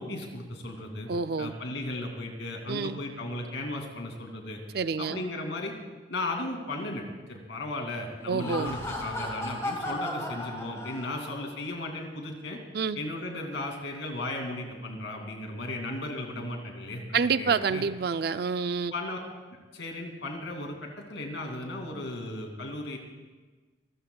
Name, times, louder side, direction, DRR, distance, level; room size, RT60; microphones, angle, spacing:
voice 1, 0.0-1.1 1.4-4.6 5.0-5.7 6.1-7.0 7.3-12.6 12.9-17.8 18.9-19.2 19.7-23.0, left 2 dB, 75° left, 2 dB, 2.6 m, -36 dB
voice 2, 1.1-1.6 2.7-3.0 4.7-5.2 8.3-8.7 12.7-13.0 17.1-18.9, right 5 dB, 55° right, 12 dB, 0.4 m, -28 dB
Laughter, 8.2-11.5, left 1 dB, 15° left, 2.5 m, -35 dB
25.5 x 14.5 x 2.3 m, 1.3 s
head